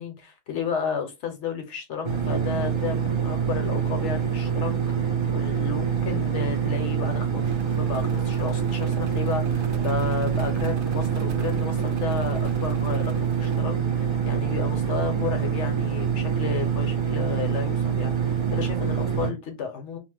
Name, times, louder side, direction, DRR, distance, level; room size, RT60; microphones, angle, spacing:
voice 1, 0.0-20.0, left 6 dB, 65° left, 0.9 m, -33 dB
sound 1, 2.0-19.3, right 7 dB, 35° right, 0.4 m, -25 dB
sound 2, 7.5-13.6, right 2 dB, 80° right, 1.0 m, -43 dB
2.9 x 2.0 x 3.2 m
omnidirectional pair, 1.4 m